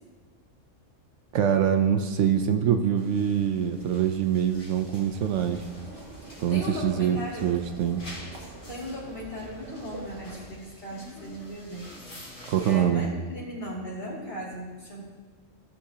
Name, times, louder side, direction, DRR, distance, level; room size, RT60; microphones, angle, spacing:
voice 1, 1.3-5.6 6.4-8.0 12.5-13.0, right 9 dB, 70° right, 7 dB, 0.9 m, -24 dB
sound 1, 3.0-12.8, left 1 dB, 70° left, 2.7 m, -48 dB
sound 2, 4.7-10.5, right 2 dB, 45° right, 1.4 m, -46 dB
voice 2, 6.2-7.5 8.7-11.9 12.5-15.0, equal, 35° left, -6 dB, 2.5 m, -37 dB
15.0 x 6.5 x 2.8 m, 1.4 s
omnidirectional pair, 1.4 m